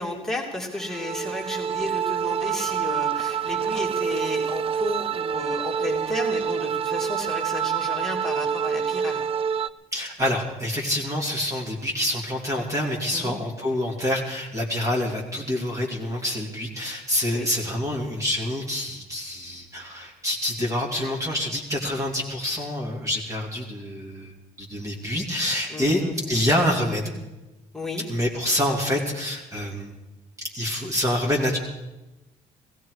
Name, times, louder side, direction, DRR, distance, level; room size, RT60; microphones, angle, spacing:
voice 1, 0.0-9.2 13.1-13.3 17.3-17.5 25.7-26.2 27.7-28.0, left 2 dB, 5° left, -2 dB, 2.8 m, -33 dB
sound 1, 0.8-9.7, right 7 dB, 40° right, 0.4 m, -27 dB
voice 2, 9.9-27.1 28.1-29.9 30.5-31.6, left 1 dB, 20° right, -1 dB, 2.5 m, -27 dB
16.5 x 16.0 x 4.8 m, 1.0 s
cardioid pair, 105°, 15 cm